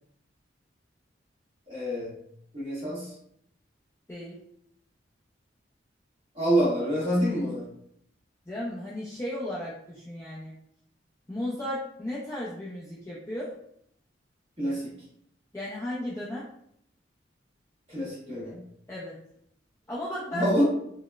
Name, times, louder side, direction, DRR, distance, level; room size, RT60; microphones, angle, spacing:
voice 1, 1.7-2.1 2.5-3.1 6.3-7.6 14.6-15.0 17.9-18.6 20.3-20.6, equal, 30° right, -10 dB, 1.2 m, -27 dB
voice 2, 8.5-10.5 11.3-13.6 15.5-16.5 18.9-19.2 19.9-20.5, left 1 dB, 15° left, -7 dB, 0.4 m, -35 dB
4.0 x 2.1 x 2.2 m, 0.71 s
head